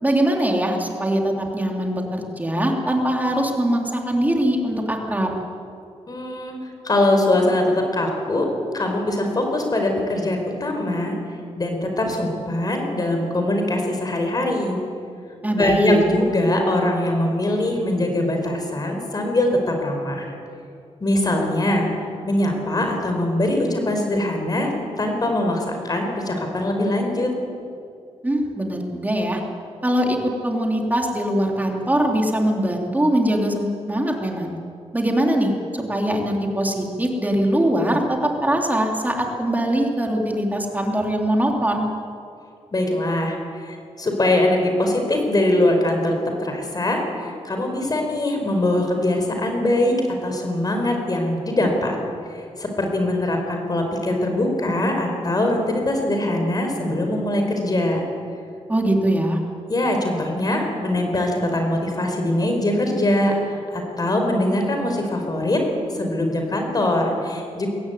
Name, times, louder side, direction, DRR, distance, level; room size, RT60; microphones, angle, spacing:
voice 1, 0.0-5.3 15.4-16.0 28.2-29.4 29.8-34.5 34.9-41.9 58.7-59.4, right 1 dB, 15° right, 1 dB, 3.6 m, -22 dB
voice 2, 6.1-6.5 6.8-8.5 8.7-11.1 11.6-14.8 15.6-20.2 21.0-21.9 22.2-24.7 25.0-27.3 42.7-49.9 50.2-52.0 52.3-58.0 59.7-65.6 65.9-67.7, left 1 dB, 35° left, 3 dB, 5.1 m, -22 dB
22.5 x 16.0 x 9.5 m, 2.4 s
wide cardioid pair, 110°, 11 cm